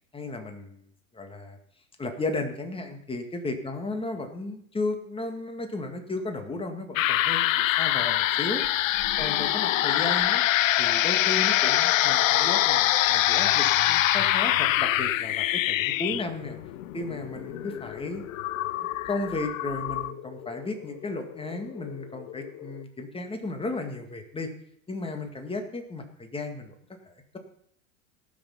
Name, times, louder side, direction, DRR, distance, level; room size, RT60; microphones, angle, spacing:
voice 1, 0.1-0.8 1.1-1.6 2.0-8.6 9.2-10.4 10.8-16.6 16.9-18.2 19.1-24.5 24.9-26.7 27.1-27.4, left 2 dB, 15° left, 5 dB, 2.0 m, -34 dB
sound 1, 7.0-20.1, left 14 dB, 75° left, 0.5 m, -24 dB
sound 2, 14.6-22.9, left 13 dB, 35° left, 0.6 m, -44 dB
18.0 x 6.3 x 5.5 m, 0.69 s
hypercardioid pair, 85°, 40 cm